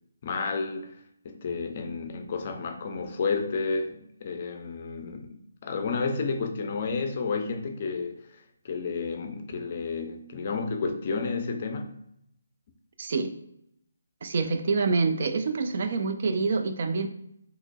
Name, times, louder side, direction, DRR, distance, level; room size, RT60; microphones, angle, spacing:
voice 1, 0.2-1.0 1.2-12.0 14.4-14.6, left 4 dB, 40° left, 6 dB, 0.4 m, -31 dB
voice 2, 13.0-13.3 14.2-17.1, right 4 dB, 50° right, 8 dB, 0.3 m, -26 dB
3.7 x 2.9 x 2.2 m, 0.76 s
figure-of-eight pair, 150°, 0 cm